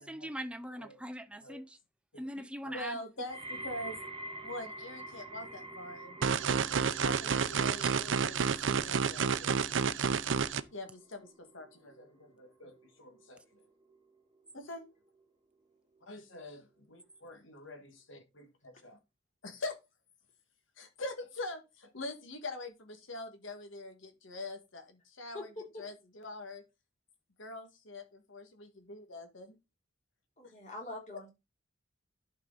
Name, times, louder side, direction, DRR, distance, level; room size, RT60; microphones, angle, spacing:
voice 1, 0.0-1.8 2.2-3.0 7.8-7.9 8.2-8.3, equal, 5° right, 0.5 m, -42 dB
voice 2, 2.1-4.0 4.4-6.5 6.9-9.9 10.7-13.6 14.5-14.8 16.0-19.0 19.4-19.8 20.8-25.5 25.8-26.6 27.4-29.6, left 2 dB, 75° left, 1.9 m, -44 dB
sound 1, 3.3-14.4 14.7-15.2 16.0-16.1, right 1 dB, 30° right, 1.1 m, -48 dB
sound 2, 6.2-10.6, right 6 dB, 70° right, 0.6 m, -30 dB
voice 3, 25.3-25.8 30.4-31.3, left 2 dB, 40° left, 3.5 m, -44 dB
11.5 x 4.8 x 4.0 m
head